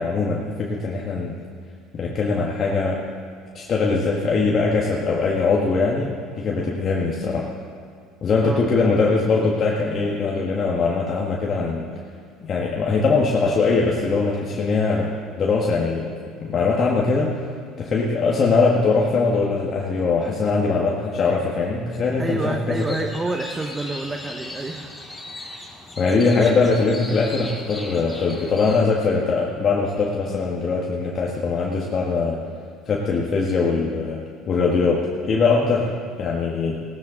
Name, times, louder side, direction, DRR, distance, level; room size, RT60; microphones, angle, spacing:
voice 1, 0.0-1.3 1.9-3.0 3.5-7.5 8.2-11.9 12.4-15.1 15.4-16.1 16.4-17.4 17.8-22.8 26.0-32.4 32.9-36.8, left 4 dB, 40° left, -2 dB, 1.5 m, -21 dB
voice 2, 22.2-25.6 35.6-35.7, right 2 dB, 20° right, 4 dB, 0.9 m, -29 dB
sound 1, 22.7-28.8, left 2 dB, 10° left, 2.2 m, -38 dB
17.0 x 13.0 x 3.9 m, 2.2 s
supercardioid pair, 100°, 0 cm